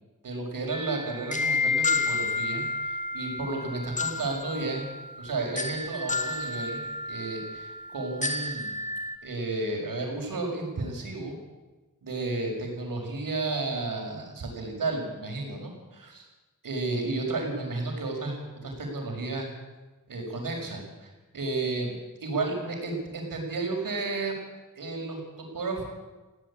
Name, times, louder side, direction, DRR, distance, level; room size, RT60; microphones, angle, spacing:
voice 1, 0.2-4.9 5.2-6.8 7.1-8.9 9.2-11.4 12.0-16.2 16.6-19.5 20.1-21.1 21.3-21.9 22.2-24.3 24.8-25.8, right 3 dB, 85° right, 2 dB, 6.2 m, -32 dB
sound 1, 0.7-9.2, left 3 dB, 20° left, 1.8 m, -31 dB
18.5 x 16.5 x 8.7 m, 1.2 s
cardioid pair, 65°, 33 cm